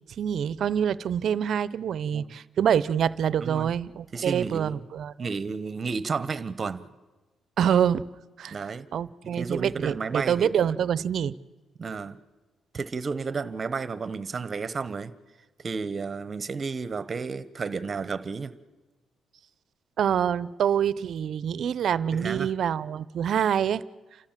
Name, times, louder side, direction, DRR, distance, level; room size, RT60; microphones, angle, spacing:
voice 1, 0.2-5.3 7.6-8.1 8.4-8.6 8.9-11.3 20.0-23.8, right 8 dB, 65° right, 0.7 m, -26 dB
voice 2, 3.4-3.7 4.1-4.8 5.2-6.9 8.5-8.9 9.2-10.5 11.8-12.2 12.7-15.1 15.6-18.6 22.1-22.5, right 4 dB, 40° right, 1.1 m, -32 dB
30.0 x 13.0 x 7.5 m
cardioid pair, 90°, 0 cm